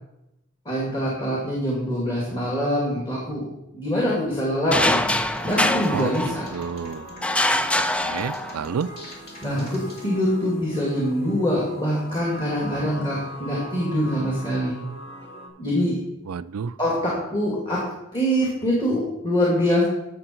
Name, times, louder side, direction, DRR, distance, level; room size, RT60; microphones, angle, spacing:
voice 1, 0.7-3.4 3.7-5.1 5.4-6.5 9.4-14.8 15.6-16.0 16.8-17.8 18.1-19.8, equal, 25° left, -5 dB, 2.4 m, -24 dB
sound 1, 4.7-6.7 7.2-8.8, left 1 dB, 5° left, 0.3 m, -24 dB
sound 2, 5.3-15.5, equal, 45° left, 2.3 m, -41 dB
voice 2, 6.5-7.1 8.0-8.9 16.3-16.7, right 6 dB, 90° right, 15 dB, 0.4 m, -29 dB
11.5 x 7.1 x 4.5 m, 0.89 s
head